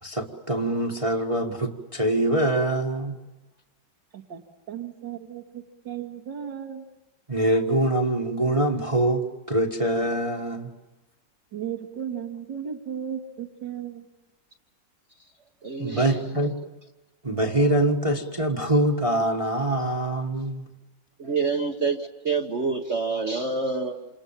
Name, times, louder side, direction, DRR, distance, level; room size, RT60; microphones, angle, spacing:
voice 1, 0.0-3.2 7.3-10.7 15.8-16.5 17.2-20.7, right 1 dB, 20° right, 1 dB, 1.6 m, -24 dB
voice 2, 4.1-6.8 11.5-14.1, right 8 dB, 80° right, 4 dB, 2.5 m, -35 dB
voice 3, 15.6-16.5 21.2-24.1, right 4 dB, 40° right, 2 dB, 1.4 m, -27 dB
28.5 x 28.0 x 7.4 m, 1.1 s
omnidirectional pair, 2.0 m